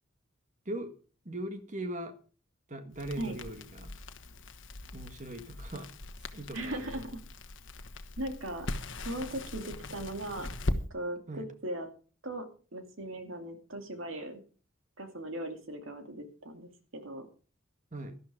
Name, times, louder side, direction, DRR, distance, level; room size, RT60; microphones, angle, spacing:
voice 1, 1.2-2.2 2.7-3.9 4.9-5.9 6.3-7.0 11.3-11.5 17.9-18.2, right 1 dB, 35° right, 8 dB, 1.6 m, -40 dB
Crackle, 2.9-10.8, left 1 dB, 65° left, 1.2 m, -40 dB
voice 2, 6.5-7.2 8.2-8.7 9.0-11.9 12.2-12.5 12.7-14.4 15.0-17.3, right 1 dB, 75° right, 5 dB, 2.6 m, -38 dB
12.5 x 12.0 x 4.9 m, 0.38 s
head